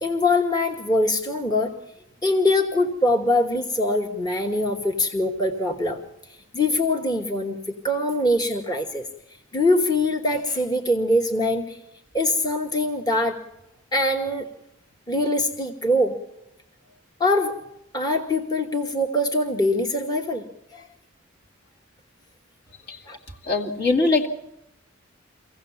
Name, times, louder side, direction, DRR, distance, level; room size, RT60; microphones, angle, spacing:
voice 1, 0.0-1.7 2.2-6.0 6.3-7.6 7.8-9.1 9.5-11.8 12.1-13.4 13.9-14.5 15.1-16.1 17.2-17.6 17.9-20.4 20.7-20.9 23.1-23.2, left 1 dB, 20° left, 4 dB, 1.1 m, -23 dB
voice 2, 22.9-24.3, left 3 dB, 55° left, 3 dB, 2.3 m, -23 dB
24.5 x 16.0 x 7.1 m, 0.84 s
head